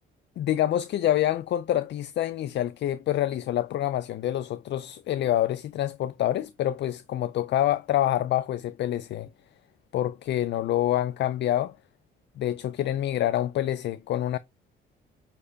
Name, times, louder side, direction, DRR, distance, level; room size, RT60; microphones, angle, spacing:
voice 1, 0.4-9.3 9.9-11.7 12.4-14.4, left 12 dB, 60° left, 0.4 m, -26 dB
7.9 x 4.4 x 2.8 m
cardioid pair, 90°, 20 cm